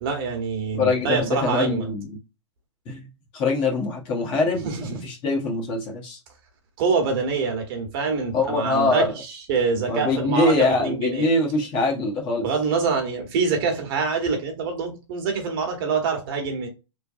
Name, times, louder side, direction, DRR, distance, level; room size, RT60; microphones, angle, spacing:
voice 1, 0.0-1.9 4.6-4.9 6.8-11.3 12.4-16.7, right 5 dB, 50° right, 1.1 m, -25 dB
voice 2, 0.8-2.1 2.9-3.1 3.3-6.2 8.3-9.1 9.9-12.5, left 3 dB, 30° left, 1.1 m, -23 dB
3.2 x 2.2 x 2.6 m
hypercardioid pair, 125°, 16 cm